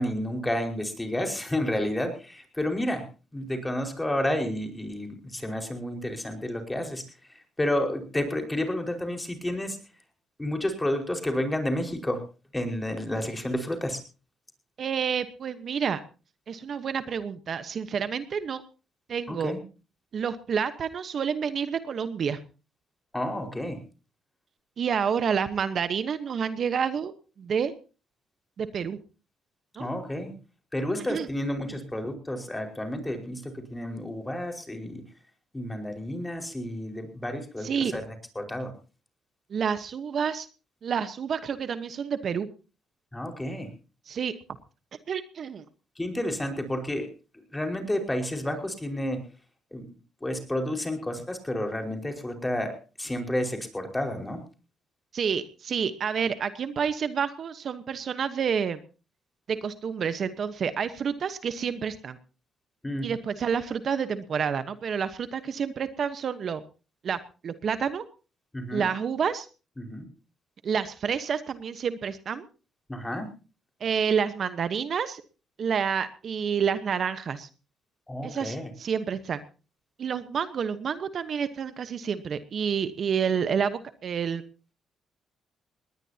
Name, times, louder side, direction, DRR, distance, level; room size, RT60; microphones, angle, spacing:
voice 1, 0.0-3.0 3.3-7.0 7.3-9.8 10.4-12.2 12.5-14.0 19.3-19.6 23.1-23.8 29.8-30.3 30.7-35.0 35.5-38.7 43.1-43.7 46.0-47.1 47.5-49.2 49.7-49.8 50.2-54.4 62.8-63.1 68.5-68.9 69.8-70.0 72.9-73.3 78.1-78.7, left 1 dB, 15° left, 5 dB, 5.1 m, -30 dB
voice 2, 14.8-16.0 16.5-18.6 19.1-19.5 20.1-22.4 24.8-27.1 27.4-27.7 28.6-29.0 29.8-29.9 31.1-31.3 37.6-37.9 39.5-40.5 40.8-42.5 44.1-44.3 45.1-45.6 55.1-58.8 59.5-62.2 63.0-66.6 67.0-68.0 68.7-69.5 70.6-72.4 73.8-75.2 75.6-77.5 78.2-79.4 80.0-84.4, right 7 dB, 55° right, 11 dB, 1.2 m, -29 dB
20.0 x 19.0 x 2.9 m, 0.34 s
cardioid pair, 90°, 0 cm